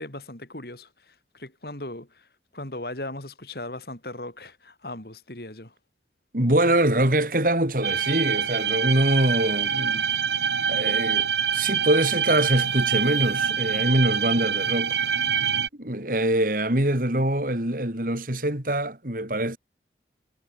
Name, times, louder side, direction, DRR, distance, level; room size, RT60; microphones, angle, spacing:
voice 1, 0.0-2.3 2.5-5.7, left 1 dB, 60° left, 3.6 m, -38 dB
voice 2, 6.3-10.0 10.7-15.0 15.8-19.6, right 1 dB, 50° right, 3.2 m, -24 dB
sound 1, 7.8-15.7, right 7 dB, 75° right, 1.8 m, -25 dB
head